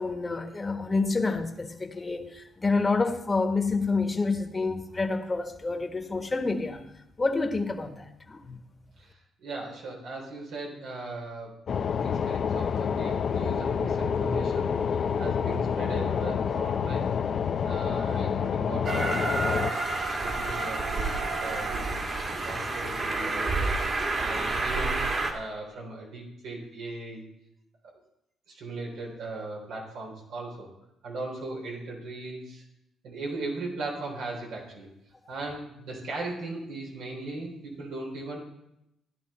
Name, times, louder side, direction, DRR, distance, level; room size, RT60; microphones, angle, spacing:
voice 1, 0.0-6.8 7.2-8.6, left 3 dB, 25° left, 1.4 m, -28 dB
voice 2, 9.0-11.6 11.9-17.1 17.6-22.0 22.4-23.7 24.1-25.0 25.3-27.3 28.5-30.7 31.0-32.6 33.0-34.9 35.3-38.4, right 2 dB, 85° right, 3.7 m, -38 dB
sound 1, 11.7-19.7, left 7 dB, 55° left, 0.6 m, -28 dB
Train, 18.8-25.3, right 3 dB, 45° right, 2.4 m, -29 dB
14.5 x 10.0 x 4.3 m
cardioid pair, 90°, 0 cm